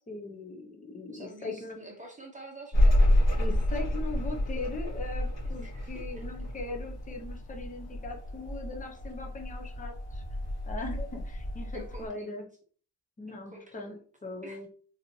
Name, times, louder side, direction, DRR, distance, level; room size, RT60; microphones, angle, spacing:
voice 1, 0.1-1.8 3.4-10.2 10.7-12.4 13.2-14.7, left 3 dB, 20° left, 2 dB, 0.6 m, -40 dB
voice 2, 1.1-3.0 5.6-6.2 11.7-12.4 13.3-14.0 14.4-14.6, right 1 dB, 20° right, 1 dB, 0.8 m, -47 dB
sound 1, 2.7-12.1, left 1 dB, 65° left, 1.8 m, -29 dB
4.0 x 3.0 x 2.7 m, 0.43 s
wide cardioid pair, 160°, 40 cm